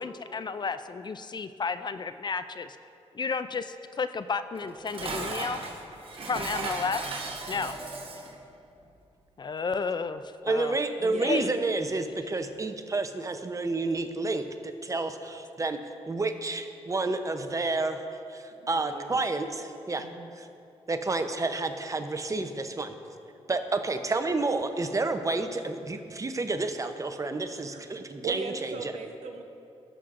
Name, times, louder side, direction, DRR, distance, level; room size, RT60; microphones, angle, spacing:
voice 1, 0.0-2.8 3.1-5.6 6.3-7.8 9.4-10.7 11.2-11.5, left 5 dB, 40° left, 11 dB, 0.4 m, -32 dB
Dishes pots and pans, 4.5-8.4, right 3 dB, 55° right, 1.1 m, -36 dB
voice 2, 10.4-15.8 16.1-18.0 18.3-20.1 20.4-20.5 20.9-22.9 23.5-28.9, right 3 dB, 30° right, 7 dB, 0.7 m, -30 dB
voice 3, 11.0-11.6 18.6-19.2 20.0-20.4 27.7-27.8 28.2-29.4, right 4 dB, 75° right, 4 dB, 0.9 m, -38 dB
17.0 x 6.2 x 2.5 m, 2.6 s
cardioid pair, 60°, 12 cm